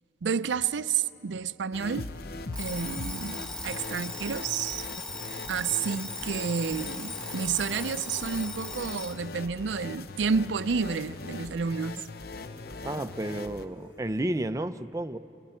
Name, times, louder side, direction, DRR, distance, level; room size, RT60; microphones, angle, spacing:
voice 1, 0.2-2.1 2.6-4.9 5.5-12.0, right 6 dB, 80° right, 0.5 m, -30 dB
sound 1, 1.7-13.7, left 3 dB, 55° left, 0.7 m, -41 dB
Alarm, 2.5-9.2, left 2 dB, 5° left, 1.0 m, -38 dB
sound 2, 4.0-6.0 6.9-10.5 10.9-11.4 11.8-11.9 12.3-14.0, left 1 dB, 80° left, 3.8 m, -51 dB
voice 2, 12.8-15.2, right 1 dB, 15° right, 0.5 m, -31 dB
29.5 x 29.5 x 4.4 m
head